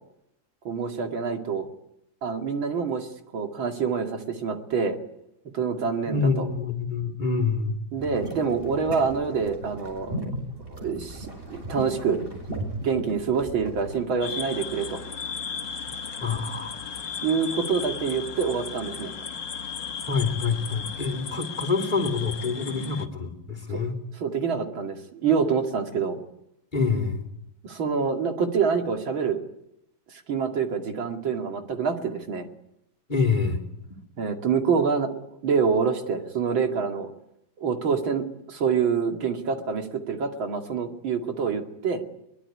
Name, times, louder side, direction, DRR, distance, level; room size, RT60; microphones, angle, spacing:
voice 1, 0.6-1.7 2.2-3.1 3.3-5.0 5.5-6.5 7.9-10.3 10.7-12.2 12.8-15.0 17.2-19.1 23.7-23.8 24.2-26.2 27.6-29.4 30.1-32.5 34.2-37.1 37.6-42.0, right 5 dB, 85° right, 4 dB, 3.0 m, -26 dB
voice 2, 6.1-7.9 16.2-16.8 20.1-24.0 26.7-27.3 33.1-33.6, left 4 dB, 25° left, 6 dB, 3.6 m, -26 dB
sound 1, 8.0-14.0, right 1 dB, 25° right, 6.7 m, -37 dB
sound 2, 10.4-21.0, right 1 dB, 55° right, 6.7 m, -48 dB
sound 3, 14.2-23.1, left 6 dB, 65° left, 2.2 m, -36 dB
23.0 x 22.0 x 9.7 m, 0.81 s
omnidirectional pair, 2.1 m